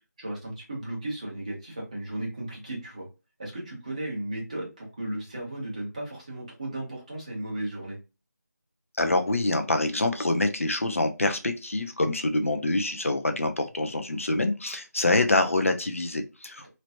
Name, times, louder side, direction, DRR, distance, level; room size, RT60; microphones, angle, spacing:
voice 1, 0.2-3.1 3.4-8.0, right 1 dB, 25° right, -4 dB, 1.2 m, -35 dB
voice 2, 9.0-16.7, left 2 dB, 50° left, 6 dB, 0.7 m, -26 dB
3.1 x 2.9 x 2.5 m, 0.28 s
figure-of-eight pair, 175°, 9 cm